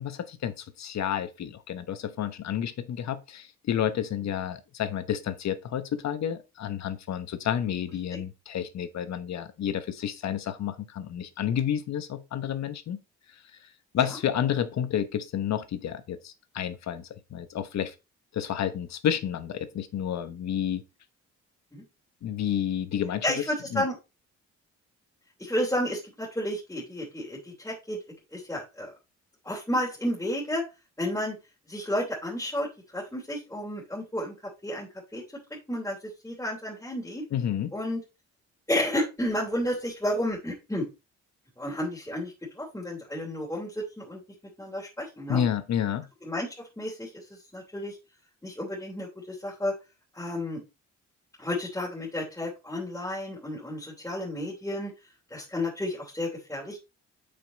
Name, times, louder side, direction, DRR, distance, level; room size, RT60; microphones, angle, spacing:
voice 1, 0.0-13.0 13.9-17.9 18.3-20.8 22.2-23.4 23.7-23.8 37.3-37.7 45.3-46.1, left 9 dB, 60° left, 1.1 m, -30 dB
voice 2, 23.2-24.0 25.4-28.0 28.3-28.9 29.4-30.6 31.0-31.4 31.7-32.7 32.9-34.3 34.6-35.2 35.7-37.2 37.7-38.0 38.7-40.9 41.6-44.2 44.6-45.4 46.2-47.2 47.5-48.0 48.4-49.7 50.1-50.6 51.4-54.9 55.3-56.8, left 1 dB, 10° left, 3.1 m, -31 dB
7.4 x 5.4 x 4.1 m
cardioid pair, 90°, 30 cm